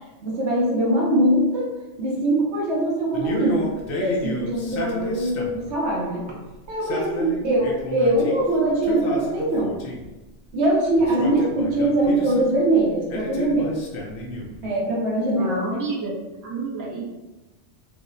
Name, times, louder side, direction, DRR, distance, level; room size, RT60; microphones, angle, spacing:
voice 1, 0.2-1.7 2.0-3.7 4.0-6.2 6.7-9.7 10.5-13.8 14.6-15.8, right 1 dB, 70° right, -3 dB, 1.0 m, -22 dB
Male speech man speaking, 3.1-5.7 6.7-8.4 8.8-10.1 11.0-12.5 13.1-14.6, left 1 dB, 60° left, 0.7 m, -31 dB
voice 2, 15.2-16.1 16.4-17.0, right 3 dB, 20° right, -6 dB, 0.6 m, -29 dB
4.5 x 2.1 x 2.6 m, 1.1 s
omnidirectional pair, 1.2 m